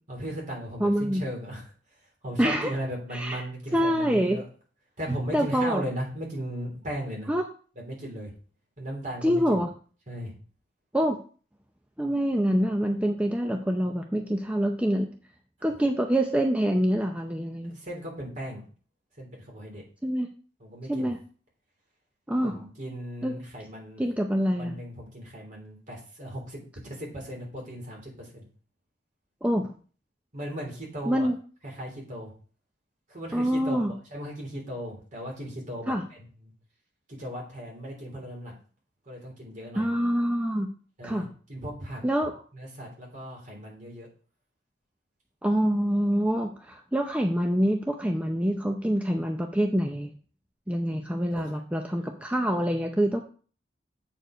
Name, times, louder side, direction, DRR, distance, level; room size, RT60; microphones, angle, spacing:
voice 1, 0.1-1.6 2.2-4.5 5.0-7.3 7.7-8.3 8.8-9.6 10.1-10.3 17.6-18.6 19.2-19.8 20.6-21.1 22.4-24.0 24.5-26.6 26.9-28.4 30.3-31.3 31.6-32.3 33.1-36.2 37.1-38.5 39.0-39.9 41.0-42.0 42.5-44.1 51.3-51.6, equal, 45° right, -2 dB, 3.4 m, -37 dB
voice 2, 0.8-1.2 2.4-2.7 3.1-3.4 3.7-4.4 5.3-5.8 7.3-7.4 9.2-9.7 10.9-11.2 12.0-15.1 15.6-17.7 20.0-20.3 20.9-21.2 22.3-22.6 23.2-23.4 24.0-24.8 29.4-29.7 31.1-31.4 33.3-33.9 35.9-36.0 39.8-40.7 41.0-41.3 42.0-42.3 45.4-50.1 50.7-53.2, equal, 10° right, 3 dB, 0.5 m, -25 dB
8.0 x 4.7 x 5.0 m, 0.41 s
head